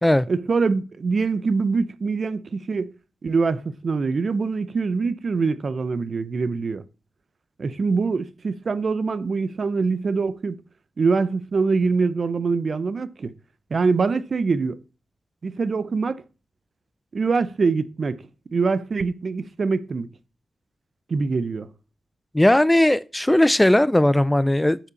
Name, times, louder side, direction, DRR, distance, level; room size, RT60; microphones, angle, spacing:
voice 1, 0.3-2.9 3.2-6.8 7.6-10.6 11.0-13.3 13.7-14.8 15.4-16.2 17.1-18.2 18.5-20.1 21.1-21.7, right 4 dB, 50° right, 0.8 m, -24 dB
voice 2, 22.3-24.8, left 1 dB, 10° left, 0.4 m, -18 dB
7.3 x 6.8 x 7.0 m
wide cardioid pair, 100°, 0 cm